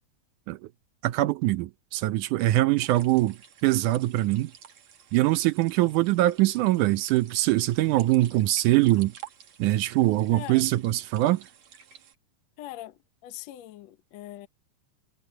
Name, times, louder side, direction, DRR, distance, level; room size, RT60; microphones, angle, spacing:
voice 1, 1.0-4.5 5.1-9.1 9.6-11.4, right 16 dB, 75° right, 1.9 m, -23 dB
sound 1, 2.8-12.2, right 9 dB, 55° right, 2.8 m, -51 dB
voice 2, 10.3-10.7 12.6-14.5, left 14 dB, 65° left, 1.8 m, -41 dB
omnidirectional pair, 4.2 m